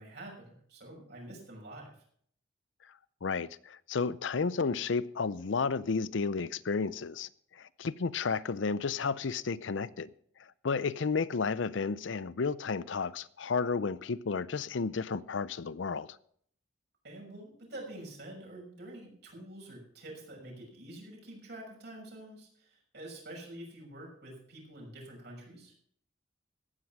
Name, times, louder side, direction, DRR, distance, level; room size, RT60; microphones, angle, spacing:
voice 1, 0.0-2.0 17.0-25.7, right 1 dB, 60° right, 6.4 m, -47 dB
voice 2, 3.2-7.3 7.6-10.1 10.6-16.1, left 5 dB, 80° left, 0.5 m, -32 dB
15.0 x 9.6 x 6.0 m
head